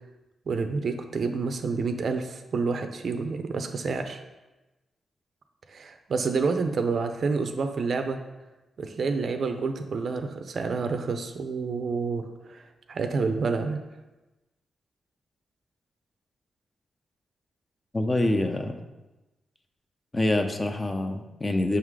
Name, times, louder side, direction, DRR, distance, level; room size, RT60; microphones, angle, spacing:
voice 1, 0.5-4.2 5.7-8.2 8.8-12.6 12.9-13.8, right 4 dB, 60° right, 7 dB, 0.5 m, -28 dB
voice 2, 17.9-18.8 20.1-21.8, left 1 dB, 25° left, 5 dB, 0.6 m, -26 dB
5.6 x 3.8 x 4.7 m, 1.1 s
cardioid pair, 80°, 0 cm